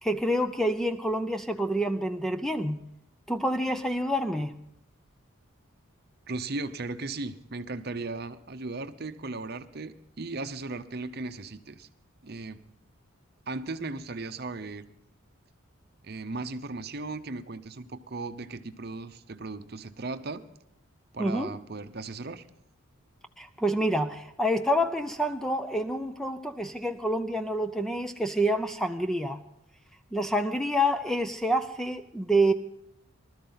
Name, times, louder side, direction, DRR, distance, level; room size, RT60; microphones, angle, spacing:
voice 1, 0.0-2.8 3.3-4.5 21.2-21.5 23.4-29.4 30.1-32.5, equal, ahead, 8 dB, 0.5 m, -27 dB
voice 2, 6.3-11.9 12.2-12.6 13.5-14.9 16.0-20.4 21.1-22.5, right 3 dB, 45° right, 10 dB, 0.7 m, -37 dB
20.0 x 13.0 x 3.9 m, 0.78 s
head